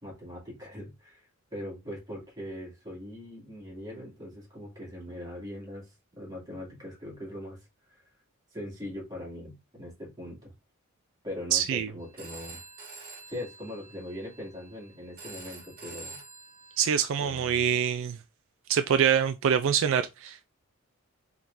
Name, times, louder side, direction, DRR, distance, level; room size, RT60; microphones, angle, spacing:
voice 1, 0.0-8.0 8.5-10.5 11.2-12.6 13.3-16.2 17.2-17.6, left 1 dB, 20° right, 2.3 m, -41 dB
voice 2, 11.5-11.9 16.8-18.2 18.7-20.5, right 8 dB, 65° right, 0.3 m, -25 dB
Telephone, 12.0-17.9, right 3 dB, 45° right, 1.7 m, -48 dB
4.5 x 3.6 x 2.6 m
head